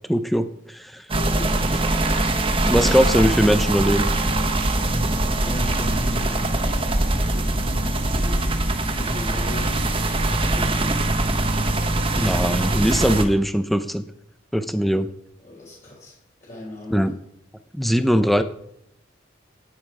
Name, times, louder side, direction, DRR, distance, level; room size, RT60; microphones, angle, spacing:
voice 1, 0.1-1.0 2.6-4.1 12.2-14.0 14.5-15.1 16.9-17.1 17.7-18.4, equal, ahead, 10 dB, 0.7 m, -20 dB
voice 2, 1.1-2.3 5.1-9.9 10.4-11.1 15.4-17.1, left 2 dB, 40° left, -5 dB, 5.3 m, -38 dB
sound 1, 1.1-13.2, right 2 dB, 25° right, 1.3 m, -22 dB
15.5 x 9.9 x 4.9 m, 0.75 s
head